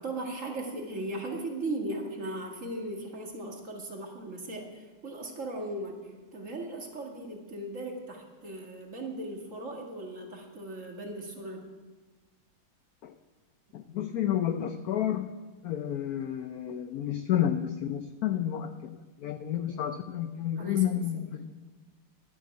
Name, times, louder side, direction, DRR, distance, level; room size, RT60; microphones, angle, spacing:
voice 1, 0.0-11.6 20.6-20.8 21.1-21.3, right 2 dB, 40° right, 1 dB, 2.1 m, -38 dB
voice 2, 13.7-15.3 15.6-18.7 19.2-21.4, left 10 dB, 75° left, 9 dB, 0.8 m, -30 dB
11.5 x 7.8 x 9.4 m, 1.3 s
omnidirectional pair, 2.3 m